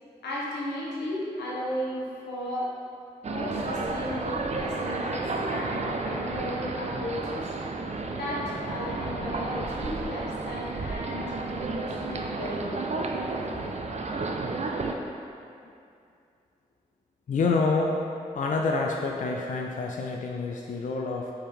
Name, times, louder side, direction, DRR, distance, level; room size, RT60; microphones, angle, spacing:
voice 1, 0.2-2.7 3.3-7.5 8.1-12.9, left 1 dB, 85° left, -5 dB, 0.9 m, -35 dB
sound 1, 3.2-14.9, right 3 dB, 40° right, 0.4 m, -32 dB
voice 2, 17.3-18.0 18.3-21.3, left 3 dB, 50° left, 0 dB, 0.4 m, -27 dB
3.6 x 3.3 x 4.4 m, 2.5 s
supercardioid pair, 40°, 17 cm